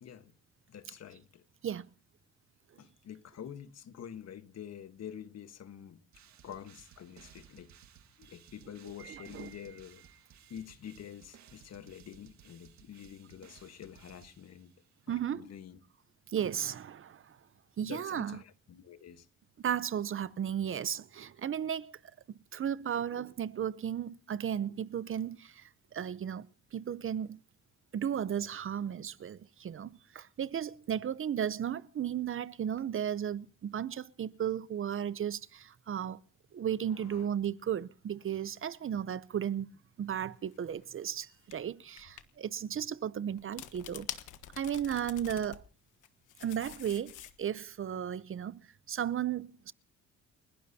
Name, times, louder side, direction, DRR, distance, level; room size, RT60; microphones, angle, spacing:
voice 1, 0.0-0.3 0.7-1.4 2.8-6.0 6.4-7.7 8.2-10.1 10.5-14.7 15.1-15.8 17.8-19.3 36.9-37.3, left 9 dB, 60° left, 1.4 m, -47 dB
sound 1, 6.1-14.9, right 9 dB, 65° right, 1.7 m, -59 dB
voice 2, 9.0-9.6 15.1-15.5 16.3-17.4 17.8-18.4 19.6-22.0 22.3-26.5 26.7-27.4 27.9-36.2 36.5-39.7 40.0-44.1 44.6-45.6 46.4-48.6 48.9-49.7, right 9 dB, 45° right, 0.7 m, -35 dB
sound 2, 40.5-40.7 41.5-41.6 42.0-42.2 43.4-45.6 46.0-47.6, left 12 dB, 85° left, 1.4 m, -45 dB
30.0 x 12.0 x 2.8 m
cardioid pair, 90°, 30 cm